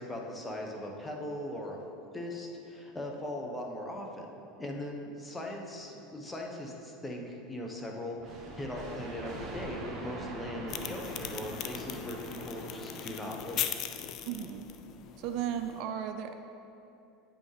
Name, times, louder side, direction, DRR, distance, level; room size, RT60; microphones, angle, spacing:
voice 1, 0.0-1.8 2.1-4.3 4.6-13.7, left 1 dB, 15° left, 0 dB, 1.1 m, -39 dB
sound 1, 8.2-13.8, right 2 dB, 40° right, 1.4 m, -43 dB
sound 2, 10.7-15.8, left 10 dB, 50° left, 0.4 m, -39 dB
voice 2, 14.3-14.7 15.2-16.3, right 9 dB, 60° right, 7 dB, 0.4 m, -35 dB
8.8 x 5.4 x 3.3 m, 2.8 s
hypercardioid pair, 85°, 0 cm